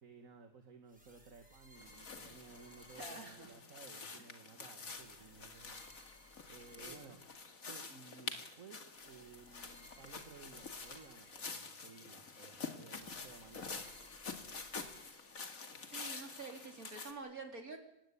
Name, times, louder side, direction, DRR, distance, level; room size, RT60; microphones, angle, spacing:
voice 1, 0.0-5.8 6.5-7.2 7.6-13.8, right 4 dB, 65° right, 6 dB, 2.2 m, -57 dB
sound 1, 0.9-4.0 4.8-7.9 8.9-12.1 12.9-16.0, equal, 5° right, 6.6 m, -63 dB
sound 2, 1.8-17.1, left 4 dB, 70° left, 2.6 m, -48 dB
voice 2, 3.0-3.5 6.8-7.0 15.9-17.8, right 3 dB, 85° right, 4 dB, 4.3 m, -48 dB
26.0 x 20.5 x 8.6 m, 0.85 s
omnidirectional pair, 1.5 m